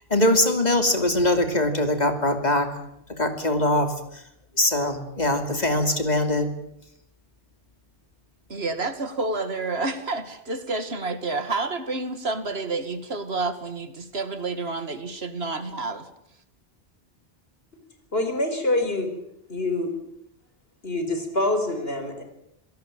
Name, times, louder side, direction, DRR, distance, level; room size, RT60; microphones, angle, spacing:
voice 1, 0.1-2.7 3.2-3.9 4.6-6.5, left 1 dB, 40° left, 6 dB, 3.1 m, -22 dB
voice 2, 8.5-16.1, right 3 dB, 70° right, 10 dB, 2.3 m, -29 dB
voice 3, 18.1-19.1 19.5-19.9 20.8-22.2, left 2 dB, 65° left, 7 dB, 4.7 m, -25 dB
27.0 x 17.5 x 8.9 m, 0.79 s
omnidirectional pair, 1.1 m